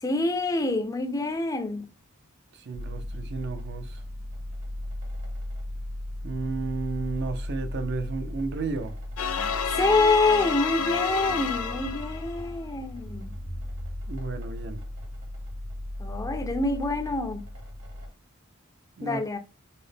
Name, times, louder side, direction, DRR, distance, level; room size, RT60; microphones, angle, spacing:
voice 1, 0.0-1.9 9.7-13.3 16.0-17.5 19.0-19.4, left 2 dB, 15° left, 0.4 m, -26 dB
voice 2, 2.5-4.0 6.2-9.0 14.1-14.8 19.0-19.2, right 3 dB, 55° right, 0.4 m, -33 dB
sound 1, 2.7-18.1, left 1 dB, 70° right, 1.7 m, -36 dB
sound 2, 9.2-12.4, left 7 dB, 85° left, 0.5 m, -30 dB
4.2 x 2.0 x 3.3 m
head